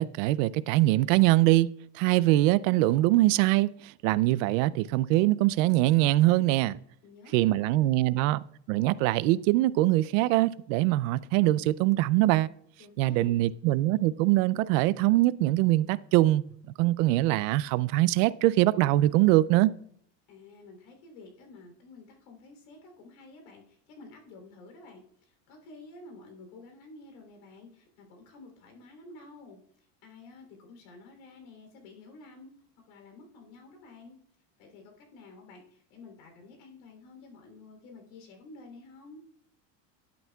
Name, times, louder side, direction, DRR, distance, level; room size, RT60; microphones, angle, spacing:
voice 1, 0.0-1.7 2.0-3.7 4.0-6.8 7.3-8.4 8.7-12.5 13.0-16.4 16.8-19.7, right 17 dB, 75° right, 0.5 m, -23 dB
voice 2, 7.0-8.0 12.8-13.5 20.3-29.6 30.0-32.5 32.9-34.2 34.6-39.2, left 3 dB, 80° left, 3.3 m, -51 dB
11.0 x 9.2 x 2.3 m
cardioid pair, 170°, 39 cm